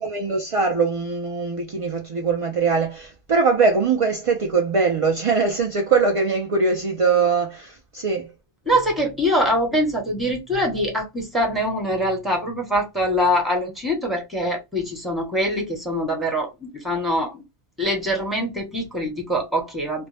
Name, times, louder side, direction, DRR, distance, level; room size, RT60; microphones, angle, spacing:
voice 1, 0.0-8.3, right 4 dB, 60° right, 0.3 m, -21 dB
voice 2, 8.7-17.4 17.8-20.1, equal, ahead, 1.0 m, -23 dB
2.5 x 2.1 x 3.2 m
omnidirectional pair, 1.2 m